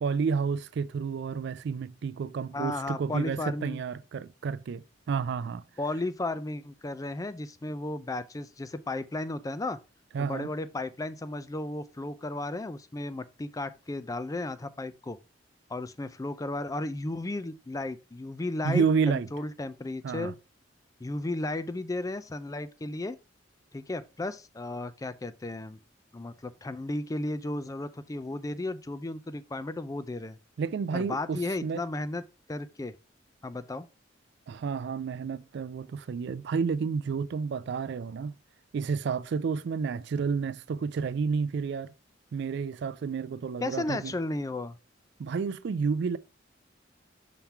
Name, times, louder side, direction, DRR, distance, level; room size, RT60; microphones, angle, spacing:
voice 1, 0.0-5.6 10.1-10.5 18.6-19.3 20.0-20.3 30.6-31.8 34.5-38.3 38.7-41.9 42.3-44.1 45.2-46.2, right 5 dB, 65° right, 0.3 m, -30 dB
voice 2, 2.5-3.8 5.8-9.8 10.2-15.2 15.7-20.4 21.0-23.2 23.7-25.8 26.1-30.4 30.9-32.2 32.5-32.9 33.4-33.9 43.6-44.8, left 2 dB, 20° left, 0.4 m, -34 dB
5.8 x 3.7 x 4.4 m
head